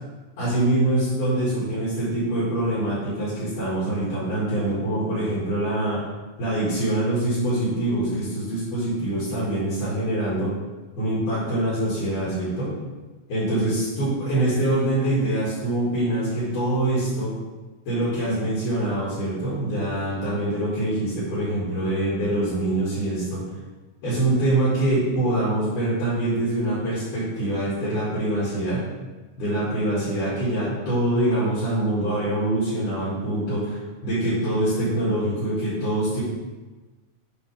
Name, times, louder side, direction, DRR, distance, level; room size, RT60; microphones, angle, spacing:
voice 1, 0.4-6.0 6.4-10.5 11.0-12.7 13.3-17.3 17.9-23.4 24.0-28.8 29.4-36.2, right 1 dB, 70° left, -11 dB, 3.9 m, -24 dB
7.7 x 5.4 x 3.5 m, 1.2 s
omnidirectional pair, 3.8 m